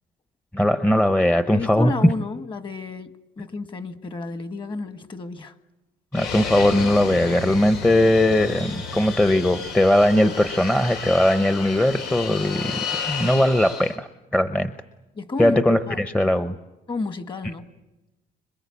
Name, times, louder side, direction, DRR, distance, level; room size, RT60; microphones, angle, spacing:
voice 1, 0.5-1.9 6.1-14.7 15.4-16.5, left 1 dB, 5° left, 0.9 m, -20 dB
voice 2, 1.5-5.5 15.1-15.6 15.9-16.0 16.9-17.7, left 3 dB, 30° left, 1.6 m, -31 dB
Fixed-wing aircraft airplane, 6.1-13.9, left 5 dB, 90° left, 4.2 m, -32 dB
26.0 x 22.5 x 8.4 m
cardioid pair, 110°, 17 cm